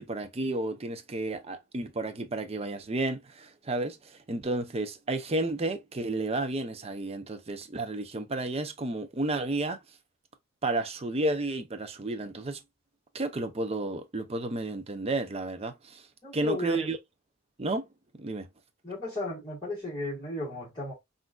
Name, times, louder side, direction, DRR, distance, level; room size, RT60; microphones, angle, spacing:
voice 1, 0.0-9.8 10.6-12.6 13.1-16.1 16.3-17.0 17.6-17.9 18.2-18.5, right 2 dB, 25° right, 0.5 m, -32 dB
voice 2, 16.2-16.9 18.8-20.9, left 2 dB, 20° left, 1.7 m, -34 dB
5.9 x 2.5 x 2.3 m
head